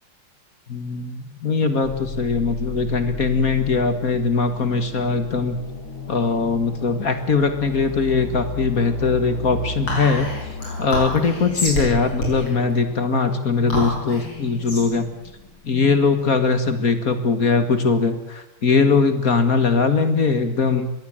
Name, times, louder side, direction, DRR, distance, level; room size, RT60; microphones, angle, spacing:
voice 1, 0.7-5.6 6.1-10.3 10.8-15.1 15.6-20.9, left 4 dB, 45° left, 9 dB, 2.1 m, -20 dB
sound 1, 1.8-15.6, left 3 dB, 70° left, 3.0 m, -34 dB
Whispering, 9.9-16.5, left 1 dB, 85° left, 8.4 m, -30 dB
22.0 x 16.5 x 9.0 m, 0.88 s
omnidirectional pair, 2.3 m